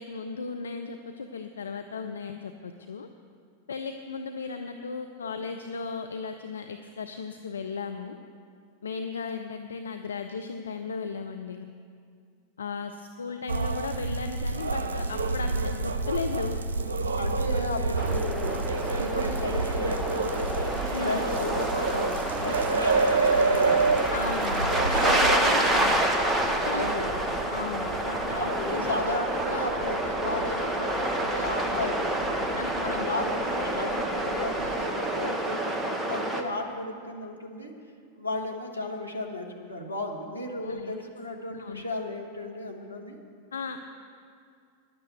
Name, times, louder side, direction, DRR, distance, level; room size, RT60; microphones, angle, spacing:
voice 1, 0.0-3.1 3.7-8.2 8.8-11.7 12.6-16.6 20.9-21.3 24.1-26.0 26.6-26.9 27.5-29.0 32.5-33.2 40.6-40.9 41.5-41.8 43.5-43.8, left 5 dB, 70° left, 6 dB, 0.5 m, -36 dB
sound 1, 13.5-25.4, right 3 dB, 65° right, 0.7 m, -28 dB
sound 2, 16.0-35.2, right 1 dB, 25° left, 3.5 m, -42 dB
voice 2, 17.1-20.4 21.0-24.2 25.3-25.7 26.7-27.2 28.3-32.3 32.8-37.7 38.2-43.2, left 1 dB, 85° left, 0 dB, 1.5 m, -34 dB
sound 3, 18.0-36.4, right 1 dB, 5° right, 1.1 m, -28 dB
10.5 x 8.9 x 8.0 m, 2.2 s
figure-of-eight pair, 90°, 0 cm